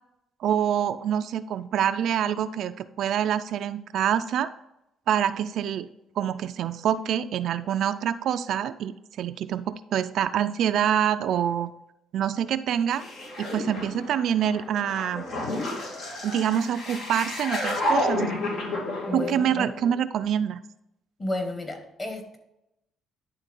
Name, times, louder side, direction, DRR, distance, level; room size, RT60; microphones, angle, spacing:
voice 1, 0.4-4.5 5.1-5.9 6.2-11.7 12.1-13.0 13.4-15.3 16.2-18.3 19.1-20.6, right 9 dB, 65° right, 11 dB, 0.4 m, -26 dB
sound 1, 12.9-20.0, left 1 dB, 70° left, 2.4 m, -31 dB
voice 2, 19.1-19.7 21.2-22.4, left 1 dB, 30° left, 4 dB, 1.9 m, -32 dB
11.0 x 3.7 x 3.8 m, 0.86 s
cardioid pair, 105°, 0 cm